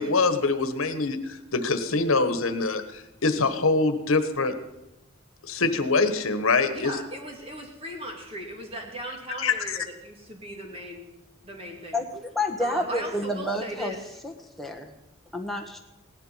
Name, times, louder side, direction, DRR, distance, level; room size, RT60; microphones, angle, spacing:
voice 1, 0.0-4.5 5.4-6.9 9.4-9.8, left 3 dB, 80° left, 9 dB, 1.2 m, -24 dB
voice 2, 6.7-11.1 11.4-12.0 12.6-14.0, equal, 30° right, 1 dB, 2.5 m, -38 dB
voice 3, 12.3-14.0 14.2-14.9 15.3-15.8, left 1 dB, ahead, 2 dB, 1.3 m, -29 dB
17.0 x 11.5 x 5.6 m, 0.97 s
head